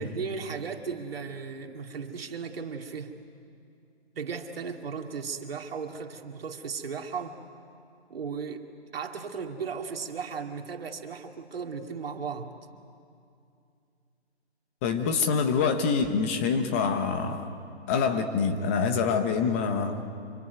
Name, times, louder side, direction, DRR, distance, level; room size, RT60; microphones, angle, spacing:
voice 1, 0.0-3.1 4.1-7.4 8.1-12.5, right 5 dB, 60° right, 4 dB, 2.4 m, -36 dB
voice 2, 14.8-17.5 17.9-20.1, left 5 dB, 15° left, 7 dB, 0.8 m, -26 dB
26.5 x 24.0 x 9.3 m, 2.5 s
hypercardioid pair, 160°, 34 cm